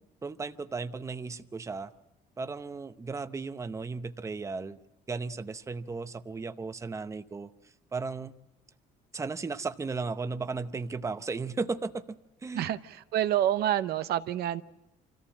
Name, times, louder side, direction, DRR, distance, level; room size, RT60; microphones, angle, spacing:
voice 1, 0.2-1.9 2.4-4.8 5.1-7.5 7.9-8.3 9.1-12.0 12.4-12.7, right 4 dB, 15° right, 0.7 m, -35 dB
voice 2, 12.5-14.6, right 12 dB, 70° right, 0.8 m, -28 dB
25.5 x 14.5 x 7.3 m
cardioid pair, 110°, 17 cm